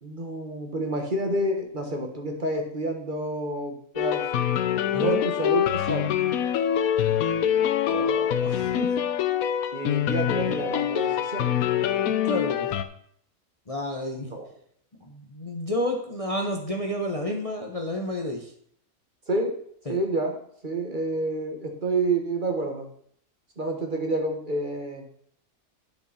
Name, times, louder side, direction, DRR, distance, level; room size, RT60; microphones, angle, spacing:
voice 1, 0.0-4.5 5.0-6.2 9.7-11.6 14.2-14.5 19.3-19.5 19.9-20.3 20.6-22.9 23.6-25.0, right 2 dB, 35° right, 2 dB, 1.7 m, -29 dB
sound 1, 4.0-12.8, left 10 dB, 90° left, 1.2 m, -25 dB
voice 2, 7.9-8.9 12.2-12.7 13.7-14.3 15.0-18.5 19.9-20.0, left 1 dB, 30° left, 1 dB, 1.0 m, -30 dB
10.5 x 7.0 x 4.2 m, 0.65 s
omnidirectional pair, 1.4 m